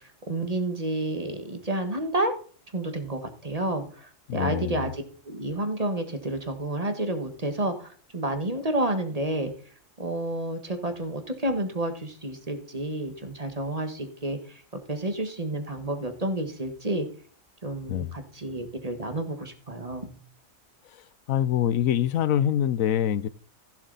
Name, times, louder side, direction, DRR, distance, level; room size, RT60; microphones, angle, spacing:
voice 1, 0.3-2.3 2.7-9.5 10.0-14.4 14.9-17.1 17.6-20.1, right 1 dB, 30° right, 1.6 m, -30 dB
voice 2, 4.3-4.9 17.9-18.1 21.3-23.3, left 10 dB, 80° left, 1.0 m, -24 dB
15.0 x 7.4 x 4.0 m
omnidirectional pair, 1.4 m